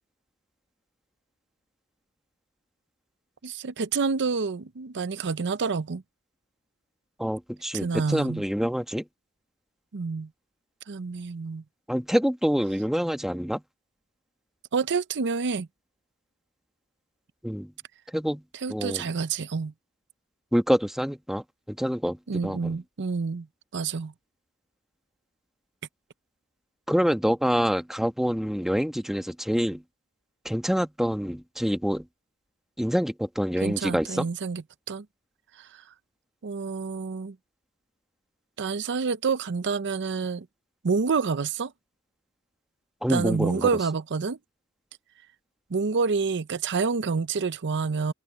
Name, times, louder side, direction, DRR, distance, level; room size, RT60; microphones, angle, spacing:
voice 1, 3.4-6.0 7.7-8.4 9.9-10.3 10.9-11.6 14.7-15.7 18.5-19.7 22.3-23.5 23.7-24.1 33.6-34.6 34.9-35.1 35.6-35.7 36.4-37.4 38.6-40.5 40.8-41.7 43.1-44.4 45.7-48.1, right 5 dB, 50° right, 0.6 m, -28 dB
voice 2, 7.2-9.0 11.9-13.6 17.4-17.7 18.1-18.4 18.7-19.1 20.5-22.7 26.9-29.8 30.4-32.0 32.8-34.3 43.0-43.7, equal, ahead, 1.2 m, -26 dB
open air
head